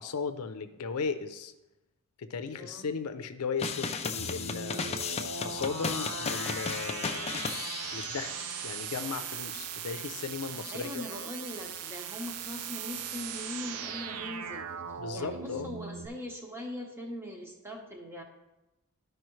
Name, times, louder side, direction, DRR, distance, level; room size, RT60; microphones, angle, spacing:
voice 1, 0.0-1.5 2.2-4.9 5.4-7.4 7.9-8.4 8.6-11.0 15.0-15.7, left 5 dB, 80° left, 9 dB, 0.5 m, -36 dB
voice 2, 2.5-2.9 10.7-18.2, left 1 dB, 10° right, 0 dB, 1.1 m, -41 dB
sound 1, 3.6-8.5, left 5 dB, 30° left, 0.4 m, -35 dB
sound 2, 4.2-16.1, right 6 dB, 90° right, 0.6 m, -39 dB
12.5 x 4.7 x 3.1 m, 1.0 s
head